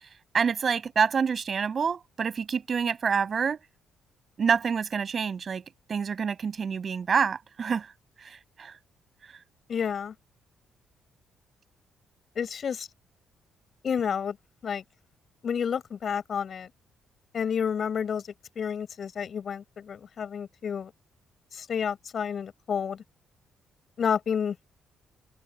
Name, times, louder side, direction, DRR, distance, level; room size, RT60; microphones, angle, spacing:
voice 1, 0.3-3.6 4.4-5.6 5.9-7.9 8.2-8.7, right 6 dB, 45° right, 5.6 m, -27 dB
voice 2, 9.7-10.1 12.3-12.9 13.8-14.4 14.6-14.8 15.4-16.7 17.3-18.2 18.5-20.9 21.5-23.0 24.0-24.6, left 7 dB, 50° left, 6.6 m, -30 dB
cardioid pair, 90°, 0 cm